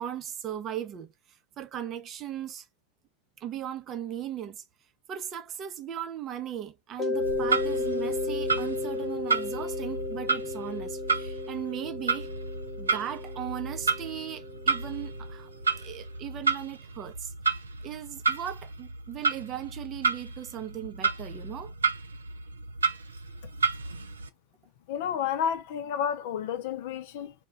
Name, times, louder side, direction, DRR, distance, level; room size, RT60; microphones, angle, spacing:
voice 1, 0.0-2.7 3.4-4.6 5.1-12.3 12.8-15.5 15.8-17.3 17.8-21.7, right 10 dB, 35° right, 0.6 m, -38 dB
Mallet percussion, 7.0-15.6, left 3 dB, 30° left, 1.0 m, -34 dB
Clock, 7.1-24.3, right 4 dB, 85° right, 0.4 m, -32 dB
voice 2, 24.9-27.3, left 8 dB, 60° left, 0.5 m, -31 dB
2.3 x 2.2 x 3.2 m
figure-of-eight pair, 85°, 0 cm